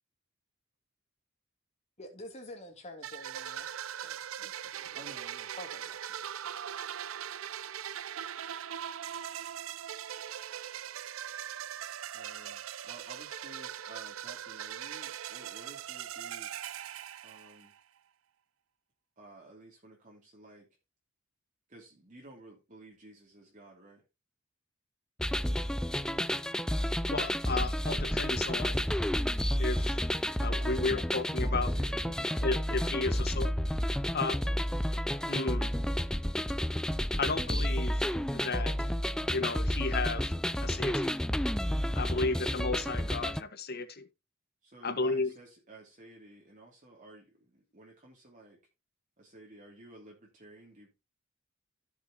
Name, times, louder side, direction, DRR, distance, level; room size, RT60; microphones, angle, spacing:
voice 1, 2.0-3.7 4.0-5.1 5.6-6.3, left 1 dB, 35° left, 3.0 m, -48 dB
sound 1, 3.0-17.8, right 10 dB, 90° right, 0.5 m, -40 dB
voice 2, 4.9-5.5 12.1-16.5 17.2-17.7 19.2-20.7 21.7-24.0 30.6-31.0 31.4-32.4 32.9-33.6 44.6-48.6 49.2-50.9, right 2 dB, 40° right, 2.7 m, -53 dB
sound 2, 25.2-43.4, equal, 5° left, 0.4 m, -31 dB
voice 3, 27.1-28.9 29.6-30.0 30.4-31.7 32.4-33.5 34.1-34.4 35.3-35.8 37.2-38.9 39.3-40.3 40.6-41.1 41.9-44.1 44.8-45.3, left 3 dB, 50° left, 1.5 m, -33 dB
15.0 x 6.6 x 2.9 m
head